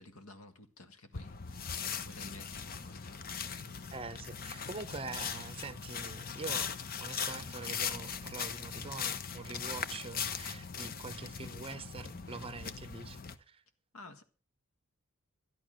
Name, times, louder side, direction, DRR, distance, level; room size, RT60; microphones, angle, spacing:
voice 1, 0.0-3.3 11.4-11.6 13.9-14.2, left 2 dB, 75° left, 1.7 m, -53 dB
sound 1, 1.1-13.4, left 6 dB, 45° left, 0.8 m, -39 dB
voice 2, 3.9-6.7 7.0-13.2 13.5-13.6, right 4 dB, 25° right, 0.9 m, -44 dB
12.0 x 11.0 x 6.4 m
head